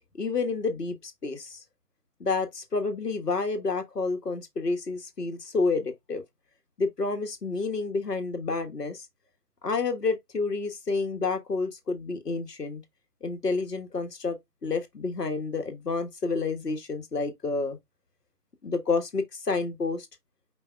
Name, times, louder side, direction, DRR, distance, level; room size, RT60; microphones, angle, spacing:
voice 1, 0.1-1.6 2.2-6.2 6.8-9.1 9.6-12.8 13.2-14.4 14.6-17.8 18.6-20.1, left 4 dB, 75° left, 1.5 m, -29 dB
5.2 x 2.2 x 4.6 m
figure-of-eight pair, 160°, 48 cm